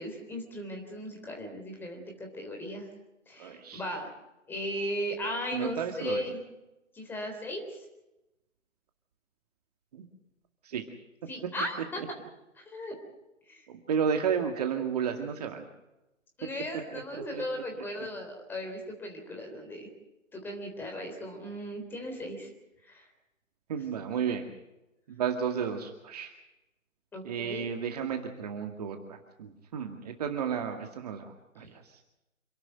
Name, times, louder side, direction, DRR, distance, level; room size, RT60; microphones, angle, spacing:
voice 1, 0.0-2.9 3.3-4.1 4.5-6.4 6.9-7.9 11.3-12.0 12.5-12.9 13.4-13.7 16.4-19.9 20.3-22.5 22.8-23.1 27.1-27.7 31.6-31.7, equal, 5° left, 3 dB, 3.6 m, -37 dB
voice 2, 3.4-3.8 5.5-6.2 9.9-10.0 10.6-10.8 13.9-15.7 16.9-17.4 23.7-24.5 25.1-26.3 27.2-31.8, right 7 dB, 30° right, 4 dB, 2.1 m, -32 dB
27.5 x 12.5 x 9.1 m, 0.95 s
figure-of-eight pair, 150°, 39 cm